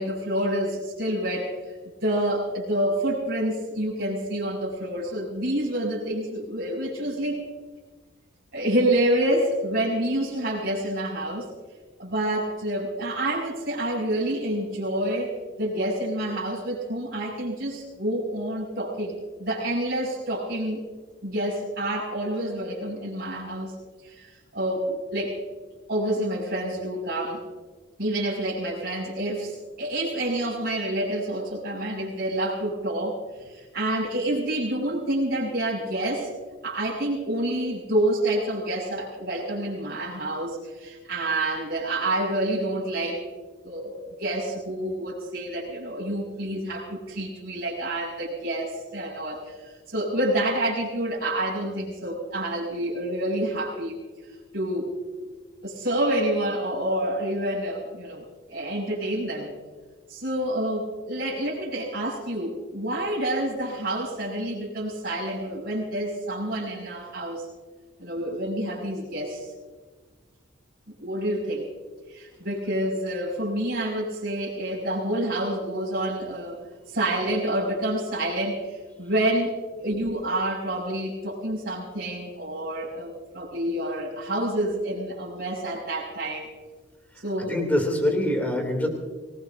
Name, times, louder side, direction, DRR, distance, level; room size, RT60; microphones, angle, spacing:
voice 1, 0.0-1.5 2.0-7.4 8.5-11.5 12.0-15.3 15.6-20.8 21.2-23.8 24.0-25.4 25.9-27.4 28.0-36.3 36.6-43.2 43.6-54.0 54.5-54.9 55.6-58.2 58.5-59.5 60.1-67.5 68.0-69.5 71.0-71.7 72.1-76.6 76.9-79.5 79.8-86.5 87.2-87.6, right 1 dB, 50° right, -6 dB, 5.9 m, -28 dB
voice 2, 87.4-88.9, left 1 dB, 10° left, 2 dB, 2.7 m, -24 dB
25.5 x 19.0 x 2.7 m, 1.3 s
head